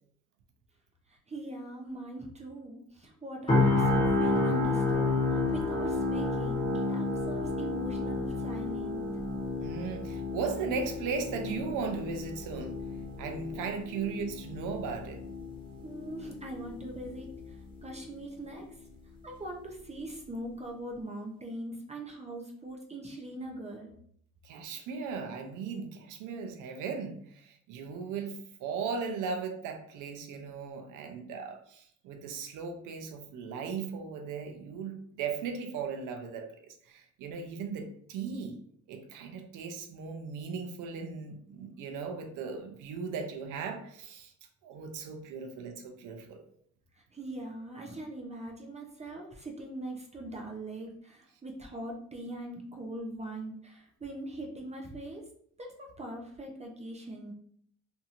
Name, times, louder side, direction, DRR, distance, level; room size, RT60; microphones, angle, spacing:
voice 1, 1.3-5.2 5.5-9.1 15.8-18.7 19.2-23.9 47.1-55.2 55.6-57.3, right 1 dB, 20° right, 1 dB, 0.5 m, -41 dB
sound 1, 3.5-17.5 17.8-18.0, left 2 dB, 15° left, 1.1 m, -31 dB
voice 2, 9.6-12.8 13.2-15.2 24.4-38.6 38.9-44.3 44.6-46.4, right 5 dB, 90° right, 5 dB, 0.6 m, -37 dB
2.8 x 2.6 x 2.4 m, 0.64 s
cardioid pair, 90°, 30 cm